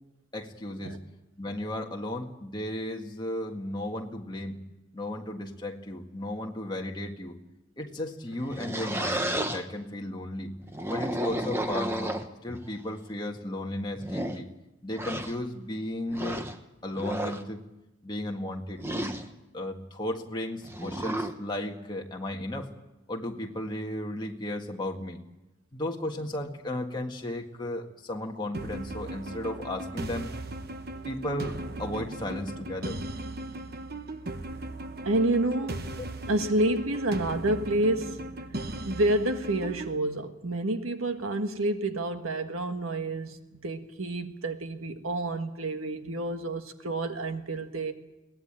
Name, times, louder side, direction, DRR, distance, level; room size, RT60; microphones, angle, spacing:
voice 1, 0.3-1.0 1.4-4.6 4.9-7.4 7.8-10.5 10.9-14.5 14.8-16.4 16.8-17.6 18.0-18.8 19.5-22.7 23.1-25.2 25.7-30.3 31.1-33.0, left 1 dB, 20° left, 1 dB, 1.8 m, -34 dB
sound 1, 8.3-9.6 10.6-12.6 13.4-13.5 13.9-14.4 14.9-15.4 16.1-16.6 16.9-17.4 18.8-19.3 20.6-21.3, right 1 dB, 10° right, 1.1 m, -32 dB
sound 2, 28.5-40.0, right 2 dB, 45° right, 1.1 m, -38 dB
voice 2, 35.0-35.9 36.3-38.2 38.9-47.9, right 2 dB, 80° right, 7 dB, 1.6 m, -29 dB
23.0 x 18.0 x 8.9 m, 0.98 s
head